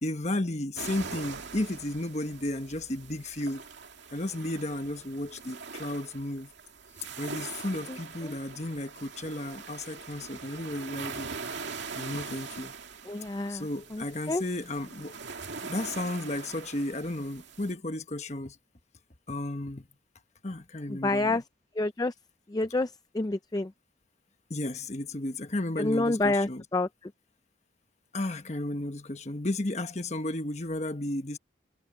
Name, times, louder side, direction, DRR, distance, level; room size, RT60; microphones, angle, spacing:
voice 1, 0.0-3.6 4.1-6.5 7.2-11.3 11.9-12.7 13.5-15.1 15.6-18.6 19.3-19.9 20.4-21.4 24.5-26.6 28.1-31.4, left 1 dB, 35° left, 1.3 m, -33 dB
sound 1, 0.8-17.7, right 5 dB, 65° right, 2.4 m, -42 dB
voice 2, 13.1-13.7 13.9-14.4 21.0-21.4 21.8-22.1 22.5-23.7 25.8-26.9, left 2 dB, 20° left, 0.4 m, -28 dB
head